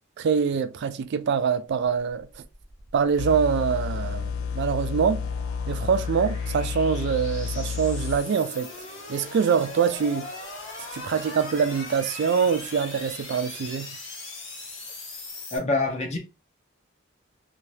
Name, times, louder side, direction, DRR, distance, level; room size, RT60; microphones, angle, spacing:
voice 1, 0.2-2.4 2.9-5.2 5.7-8.7 9.1-10.3 10.9-14.0, right 6 dB, 60° right, 0.3 m, -24 dB
sound 1, 2.2-15.6, left 2 dB, 65° left, 1.3 m, -40 dB
sound 2, 3.2-8.2, left 6 dB, 85° left, 0.4 m, -31 dB
voice 2, 15.5-16.2, left 2 dB, 35° left, 0.8 m, -25 dB
2.7 x 2.3 x 3.2 m
head